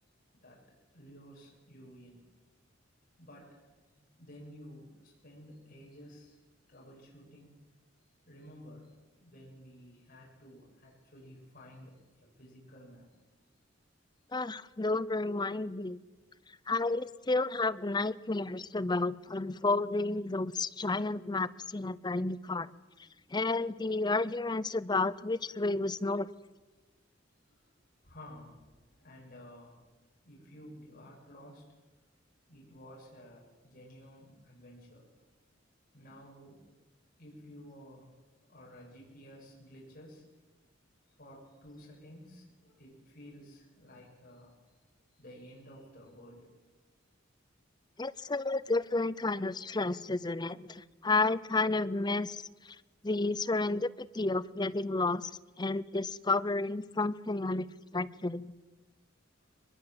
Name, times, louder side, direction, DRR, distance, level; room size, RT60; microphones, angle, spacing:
voice 1, 0.4-2.2 3.2-3.6 3.9-6.4 6.7-7.5 8.3-8.9 9.2-13.1 23.0-23.1 27.5-27.7 28.0-29.8 30.2-31.6 32.5-35.1 35.9-36.7 37.2-38.1 38.5-40.3 41.2-44.8 45.2-46.5, equal, 45° left, -3 dB, 7.8 m, -53 dB
voice 2, 14.3-16.0 16.7-22.7 23.3-26.3 48.0-52.4 53.0-55.3 55.6-57.7 57.9-58.5, left 3 dB, 20° left, 15 dB, 0.7 m, -31 dB
22.5 x 21.5 x 7.8 m, 1.2 s
head